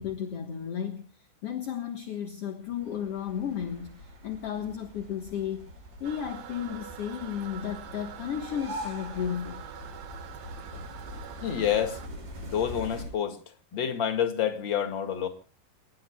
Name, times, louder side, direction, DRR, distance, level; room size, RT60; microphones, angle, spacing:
voice 1, 0.0-5.6 6.0-9.6 10.7-10.9 11.2-11.3, left 8 dB, 55° left, 1.7 m, -34 dB
sound 1, 2.6-13.0, equal, 75° right, 8.0 m, -43 dB
Toilet flush, 6.0-12.1, right 9 dB, 55° right, 2.3 m, -45 dB
voice 2, 11.4-12.0 12.4-13.4 13.7-15.3, left 9 dB, 40° left, 2.1 m, -28 dB
30.0 x 18.0 x 2.3 m
omnidirectional pair, 4.5 m